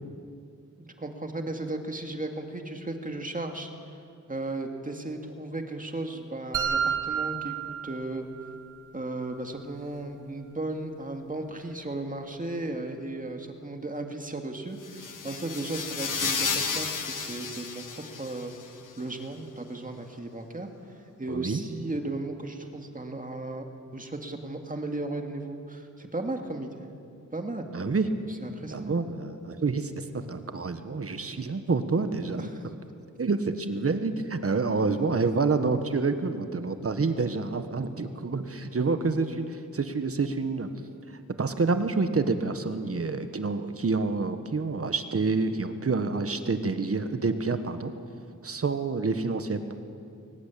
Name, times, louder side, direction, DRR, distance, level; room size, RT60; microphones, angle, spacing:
voice 1, 0.8-3.7 4.3-8.3 8.9-18.5 19.0-20.7 21.2-23.7 23.9-26.9 27.3-27.7 28.4-29.0 32.4-32.6, right 2 dB, 25° right, 4 dB, 2.1 m, -35 dB
sound 1, 6.5-8.6, right 7 dB, 70° right, 2.0 m, -30 dB
sound 2, 14.8-18.7, left 5 dB, 75° left, 1.7 m, -32 dB
voice 2, 21.3-21.6 27.7-28.1 28.7-32.5 33.2-40.7 41.4-47.9 48.4-49.7, right 4 dB, 45° right, 9 dB, 1.4 m, -28 dB
22.0 x 19.5 x 8.5 m, 2.4 s
wide cardioid pair, 125°, 32 cm